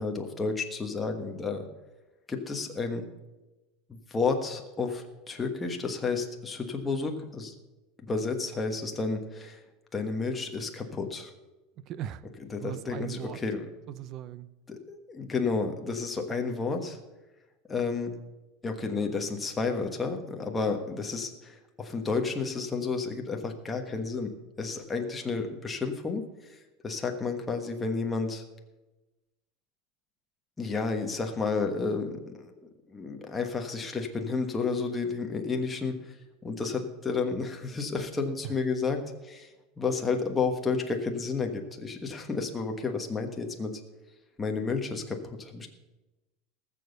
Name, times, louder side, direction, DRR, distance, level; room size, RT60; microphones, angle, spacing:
voice 1, 0.0-1.7 2.3-3.1 3.9-7.6 8.0-9.6 9.9-11.3 12.4-13.7 14.7-17.0 17.7-18.2 18.6-24.3 24.6-28.4 30.6-32.5 32.9-36.1 36.4-39.5 39.8-43.7 44.4-45.7, left 4 dB, 10° left, 1.3 m, -31 dB
voice 2, 11.8-12.2 12.6-13.4 13.9-14.5, right 11 dB, 35° right, 0.6 m, -38 dB
18.5 x 7.1 x 6.7 m
supercardioid pair, 165°, 0 cm